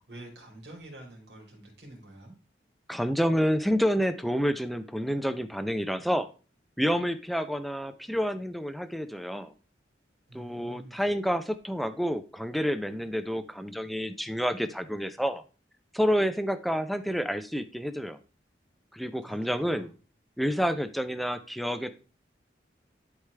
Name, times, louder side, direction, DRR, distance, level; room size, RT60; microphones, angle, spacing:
voice 1, 0.0-2.3 10.3-11.0 19.2-19.9, right 1 dB, 70° right, 1 dB, 3.5 m, -47 dB
voice 2, 2.9-6.3 6.8-9.5 10.3-15.4 15.9-18.2 18.9-19.9 20.4-21.9, equal, ahead, 10 dB, 0.5 m, -29 dB
11.5 x 4.8 x 3.3 m, 0.35 s
head